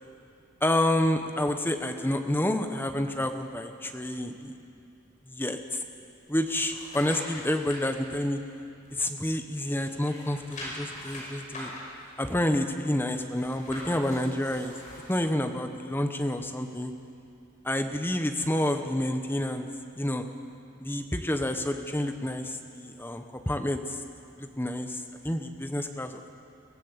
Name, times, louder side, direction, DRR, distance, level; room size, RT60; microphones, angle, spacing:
voice 1, 0.6-4.6 5.3-5.9 6.3-8.4 8.9-11.7 12.2-14.7 15.1-16.9 17.6-19.7 20.0-20.3 20.8-24.0 24.4-26.3, left 1 dB, 10° left, 6 dB, 0.9 m, -29 dB
sound 1, 6.2-7.8 8.3-9.4 9.7-15.3 15.7-15.8, left 1 dB, 35° left, 6.4 m, -43 dB
23.0 x 15.5 x 8.1 m, 2.6 s
head